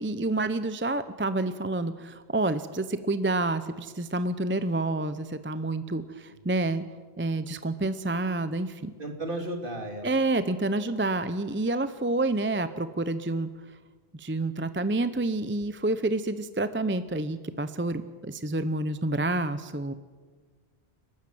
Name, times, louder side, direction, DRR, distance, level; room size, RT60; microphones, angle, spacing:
voice 1, 0.0-6.8 7.2-8.9 10.0-13.5 14.2-19.9, right 2 dB, 15° right, 12 dB, 0.6 m, -28 dB
voice 2, 9.0-10.3, right 1 dB, 55° right, 3 dB, 3.0 m, -35 dB
30.0 x 13.0 x 7.8 m, 1.5 s
omnidirectional pair, 1.1 m